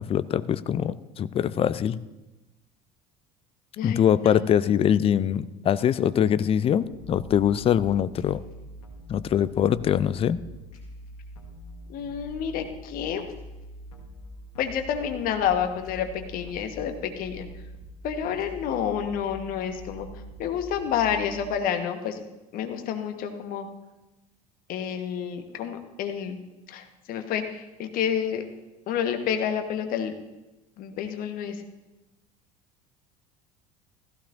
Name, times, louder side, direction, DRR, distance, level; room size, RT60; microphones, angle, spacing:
voice 1, 0.0-2.0 3.8-8.4 9.1-10.4, left 9 dB, 30° left, 16 dB, 0.5 m, -23 dB
voice 2, 3.8-4.4 11.9-13.3 14.6-17.5 18.0-20.1 20.4-22.2 22.5-23.7 24.7-26.4 26.7-28.5 28.9-30.2 30.8-31.6, left 8 dB, 50° left, 6 dB, 1.4 m, -29 dB
sound 1, 6.8-21.5, equal, 75° left, 1.8 m, -44 dB
16.0 x 15.0 x 2.7 m, 1.0 s
figure-of-eight pair, 70°, 19 cm